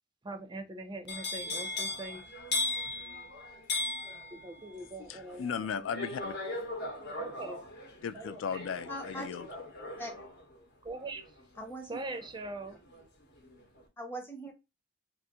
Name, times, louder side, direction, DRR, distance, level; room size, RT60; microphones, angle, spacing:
voice 1, 0.2-2.2 4.3-5.7 7.2-7.6 8.1-8.4 10.8-11.4 11.9-12.8, right 2 dB, 25° right, 0.4 m, -42 dB
sound 1, 1.1-13.0 13.4-13.8, left 2 dB, 60° left, 0.9 m, -38 dB
voice 2, 5.0-6.3 8.0-9.7, left 7 dB, 80° left, 0.3 m, -37 dB
voice 3, 8.9-9.3 10.0-10.1 11.6-12.0 14.0-14.5, equal, 10° left, 0.7 m, -40 dB
3.5 x 2.5 x 2.8 m
head